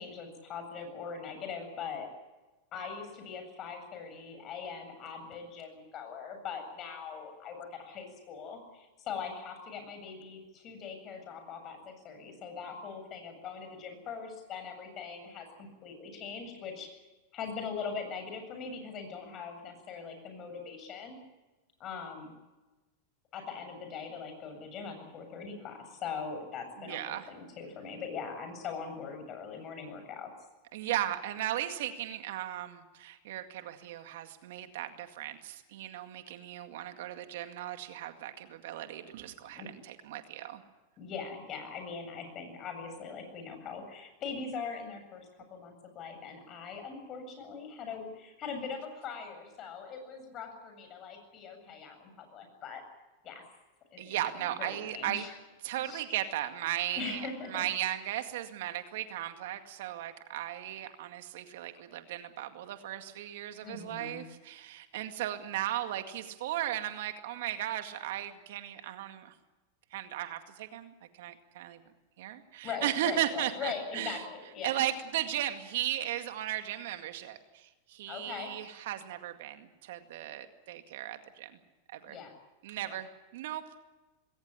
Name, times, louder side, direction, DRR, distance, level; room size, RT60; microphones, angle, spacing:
voice 1, 0.0-2.1 2.7-16.9 17.3-21.2 21.8-22.3 23.3-30.3 39.4-39.7 41.0-52.8 53.2-53.4 53.9-55.3 55.8-56.0 56.9-57.7 63.6-64.2 72.6-74.8 78.1-78.5 82.1-82.3 82.8-83.0, left 5 dB, 40° left, 6 dB, 7.7 m, -41 dB
voice 2, 26.8-27.3 30.7-40.6 54.0-55.2 55.6-69.3 69.9-71.8 72.2-74.2 74.6-81.5 81.9-82.2 82.6-83.6, right 12 dB, 70° right, 7 dB, 2.1 m, -36 dB
20.5 x 18.0 x 9.9 m, 1.1 s
hypercardioid pair, 110°, 0 cm